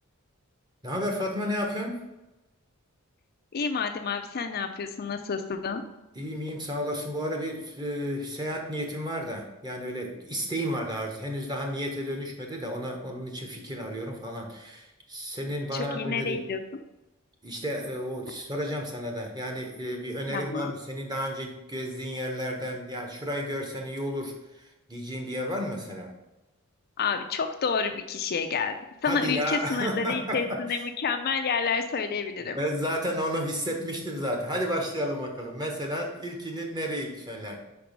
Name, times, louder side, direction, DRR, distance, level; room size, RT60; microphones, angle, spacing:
voice 1, 0.8-2.1 6.1-16.4 17.4-26.1 29.0-30.6 32.5-37.6, equal, 20° right, 2 dB, 1.1 m, -32 dB
voice 2, 3.5-5.8 15.7-16.6 20.3-20.7 27.0-32.6, left 5 dB, 45° left, 6 dB, 0.5 m, -29 dB
5.2 x 4.6 x 5.1 m, 1.0 s
head